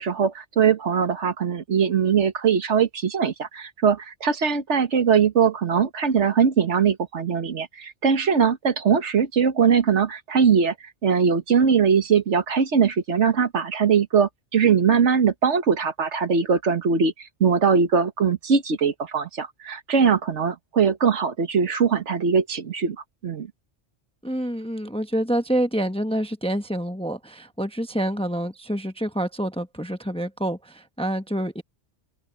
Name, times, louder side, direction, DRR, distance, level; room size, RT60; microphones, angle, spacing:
voice 1, 0.0-10.7 11.0-23.0 23.2-23.5, right 6 dB, 75° right, 1.6 m, -21 dB
voice 2, 24.2-31.6, right 1 dB, 5° left, 0.9 m, -27 dB
open air
omnidirectional pair, 1.2 m